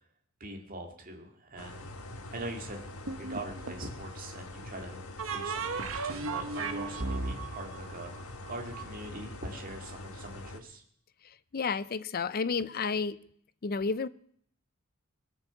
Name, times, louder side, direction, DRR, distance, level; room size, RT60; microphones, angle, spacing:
voice 1, 0.4-1.9 2.3-2.8 3.2-5.0 5.3-8.1 8.5-10.8, right 1 dB, 40° right, 2.4 m, -42 dB
sound 1, 1.6-10.6, left 1 dB, 75° left, 1.4 m, -44 dB
sound 2, 3.1-3.9 5.2-8.8, right 4 dB, 60° right, 1.3 m, -35 dB
voice 2, 11.2-13.2 13.6-14.1, left 5 dB, 40° left, 0.5 m, -31 dB
21.0 x 7.1 x 6.9 m
head